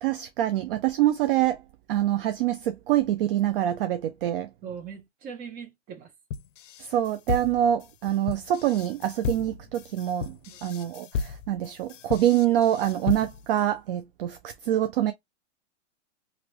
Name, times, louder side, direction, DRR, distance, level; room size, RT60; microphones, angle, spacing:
voice 1, 0.0-1.6 1.9-4.5 6.8-15.1, right 12 dB, 50° right, 0.4 m, -25 dB
voice 2, 4.6-6.1 10.5-10.6, right 7 dB, 25° right, 1.0 m, -40 dB
sound 1, 6.3-13.6, left 5 dB, 80° left, 0.5 m, -34 dB
3.0 x 2.6 x 2.9 m
hypercardioid pair, 145°, 37 cm